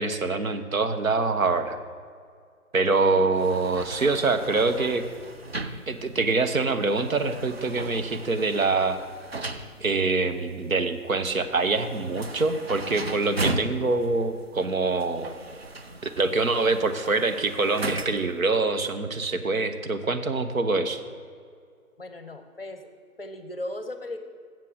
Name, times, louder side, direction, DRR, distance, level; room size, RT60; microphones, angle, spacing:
voice 1, 0.0-1.8 2.7-5.0 5.9-9.0 9.8-15.3 16.0-21.0, right 3 dB, 65° right, 8 dB, 0.8 m, -25 dB
sound 1, 3.3-18.4, right 2 dB, 45° right, 0.5 m, -37 dB
voice 2, 22.0-22.9 23.2-24.2, left 1 dB, 40° left, 8 dB, 0.7 m, -36 dB
7.5 x 7.3 x 6.3 m, 2.2 s
figure-of-eight pair, 150°, 44 cm